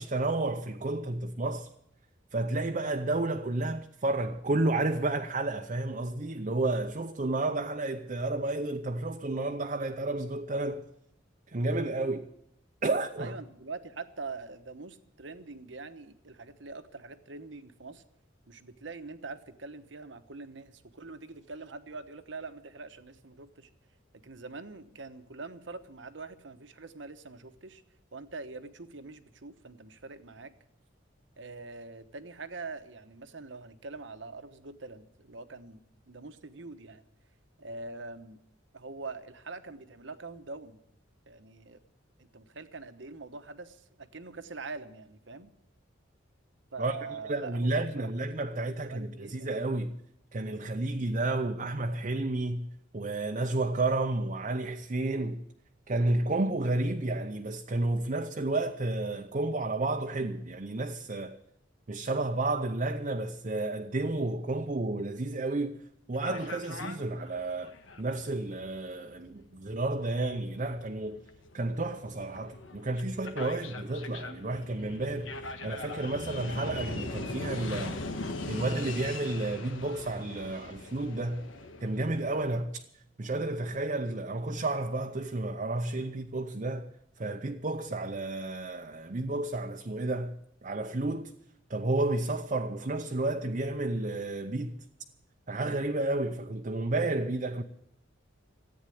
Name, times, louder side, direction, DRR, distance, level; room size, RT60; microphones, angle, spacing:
voice 1, 0.0-1.7 2.3-10.8 11.5-12.3 12.8-13.3 46.8-50.0 50.3-52.7 52.9-55.4 55.9-61.4 61.9-65.8 66.1-71.2 71.5-78.0 78.5-81.5 81.8-82.8 83.2-86.9 87.2-91.4 91.7-94.8 95.5-97.6, right 2 dB, 40° right, 0.7 m, -31 dB
voice 2, 13.2-18.0 18.5-23.7 24.1-27.8 28.1-30.5 31.4-35.8 36.1-37.0 37.6-38.4 38.7-40.8 41.3-41.8 42.2-45.5 46.7-48.1 48.5-49.5, right 3 dB, 70° right, 1.1 m, -44 dB
sound 1, 66.1-82.6, left 3 dB, 85° left, 1.4 m, -41 dB
14.0 x 8.9 x 10.0 m
head